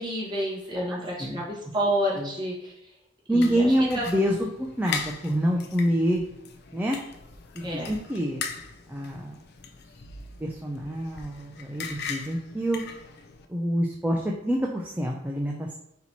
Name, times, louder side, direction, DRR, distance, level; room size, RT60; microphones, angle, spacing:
voice 1, 0.0-2.9 3.3-4.0 7.6-7.9, equal, 25° right, -4 dB, 1.4 m, -30 dB
voice 2, 3.3-6.2 6.7-7.0 7.5-8.4 8.9-9.4 10.4-12.8 13.5-15.7, equal, 10° right, -2 dB, 0.4 m, -26 dB
sound 1, 3.4-13.5, left 6 dB, 60° left, 0.5 m, -39 dB
4.3 x 2.9 x 4.1 m, 0.83 s
head